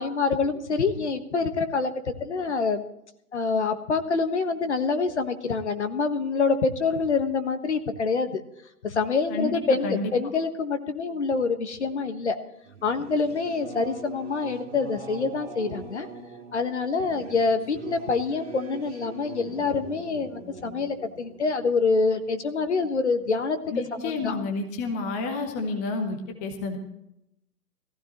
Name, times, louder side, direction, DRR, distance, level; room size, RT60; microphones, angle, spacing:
voice 1, 0.0-2.9 3.3-8.4 8.8-12.4 12.8-16.1 16.5-23.6 24.0-24.4, left 4 dB, 45° left, 8 dB, 1.4 m, -26 dB
voice 2, 9.3-10.1 23.7-26.8, left 3 dB, 10° left, 5 dB, 0.8 m, -30 dB
Singing / Musical instrument, 12.6-22.7, right 4 dB, 40° right, 2.4 m, -42 dB
19.5 x 15.0 x 3.1 m, 0.80 s
figure-of-eight pair, 135°, 46 cm